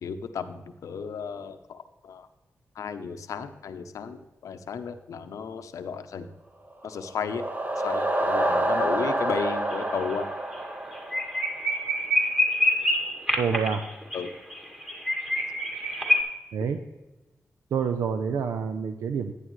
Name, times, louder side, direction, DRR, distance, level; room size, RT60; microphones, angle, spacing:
voice 1, 0.0-2.3 2.8-6.3 6.8-7.4 7.8-10.3 14.1-14.3, left 6 dB, 85° left, 9 dB, 0.7 m, -34 dB
sound 1, 6.8-11.7, right 1 dB, 30° right, 1.0 m, -28 dB
sound 2, 9.4-9.7 10.0-10.1 10.5-10.6 10.9-16.2, left 1 dB, 10° right, 2.3 m, -26 dB
voice 2, 13.4-13.8 16.5-16.8 17.7-19.3, right 6 dB, 85° right, 8 dB, 0.5 m, -27 dB
11.0 x 9.8 x 3.1 m, 1.1 s
cardioid pair, 55°, 5 cm